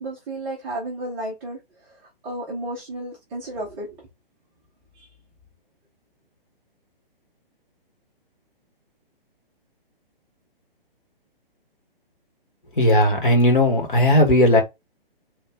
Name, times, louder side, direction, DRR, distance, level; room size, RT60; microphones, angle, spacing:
voice 1, 0.0-4.1 4.9-5.1, right 1 dB, 5° right, 0.4 m, -33 dB
voice 2, 12.8-14.6, left 1 dB, 60° left, 1.6 m, -16 dB
3.3 x 2.5 x 3.1 m
figure-of-eight pair, 130°, 29 cm